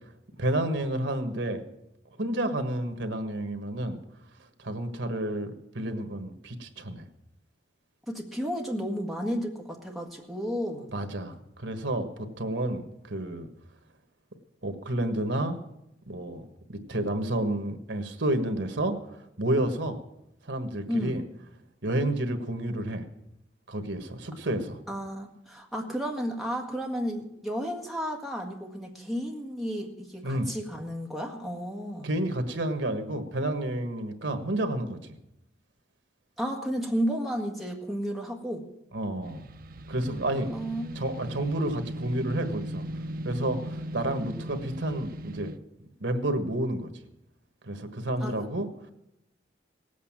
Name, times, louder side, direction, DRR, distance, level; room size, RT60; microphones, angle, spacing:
voice 1, 0.4-1.6 2.2-4.0 4.6-7.0 10.9-13.5 14.6-15.6 16.1-20.0 20.4-21.2 21.8-23.1 23.7-24.8 30.2-30.5 32.0-35.2 38.9-39.4 39.9-40.5 40.9-42.8 43.2-45.5 46.0-46.9 47.6-48.7, right 1 dB, 80° right, 7 dB, 1.5 m, -30 dB
voice 2, 8.1-10.9 20.9-21.2 24.9-32.1 36.4-38.7 40.5-41.1 48.2-48.5, equal, ahead, 0 dB, 1.7 m, -32 dB
sound 1, 39.2-45.6, equal, 50° right, 0.5 m, -38 dB
18.0 x 8.3 x 7.4 m, 0.85 s
head